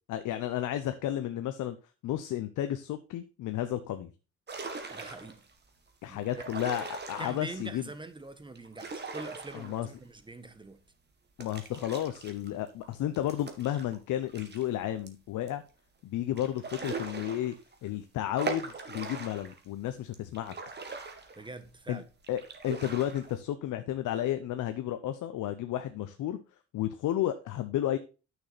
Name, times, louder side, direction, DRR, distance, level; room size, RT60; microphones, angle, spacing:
voice 1, 0.1-1.8 2.0-4.1 6.0-7.9 9.5-9.9 11.4-15.6 16.0-17.5 17.8-20.5 21.9-22.0 22.3-26.4 26.7-28.0, left 12 dB, 80° left, 0.8 m, -32 dB
sound 1, 4.5-5.5 6.2-7.7 8.6-10.2 10.5-10.6 11.4-14.7 15.1-15.2 15.5-15.6 16.4-17.9 18.4-19.6 20.1-21.8 22.2-23.4, right 4 dB, 35° right, 1.9 m, -40 dB
voice 2, 4.9-5.4 6.1-6.4 7.2-10.8 21.4-22.0, right 2 dB, 15° right, 1.2 m, -44 dB
9.6 x 6.2 x 4.1 m
cardioid pair, 90°, 30 cm